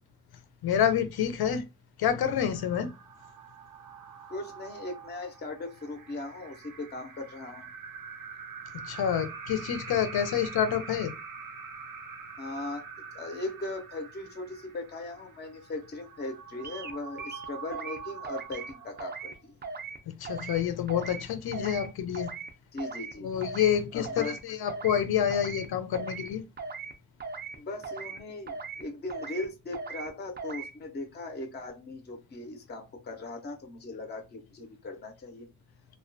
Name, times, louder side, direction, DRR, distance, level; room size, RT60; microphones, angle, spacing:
voice 1, 0.6-1.6 2.0-2.9 8.8-11.1 20.1-22.3 23.2-26.4, left 9 dB, 75° left, 0.5 m, -28 dB
sound 1, 2.1-19.5, right 5 dB, 65° right, 0.6 m, -45 dB
voice 2, 4.3-7.6 12.4-12.8 13.1-19.6 22.7-23.3 23.9-24.4 27.5-35.5, left 2 dB, 30° left, 0.5 m, -39 dB
sound 2, 16.6-16.9 17.2-18.0 18.2-18.7 19.0-19.3 19.6-20.0 20.2-20.6 20.9-21.2 21.5-21.9 22.1-22.5 22.8-23.1 23.4-23.8 24.0-24.4 24.7-25.0 25.3-25.7 25.9-26.3 26.6-26.9 27.2-27.6 27.8-28.2 28.5-28.8 29.1-29.5 29.7-30.1 30.4-30.7, right 4 dB, 30° right, 0.3 m, -39 dB
2.3 x 2.2 x 2.5 m
wide cardioid pair, 125°, 37 cm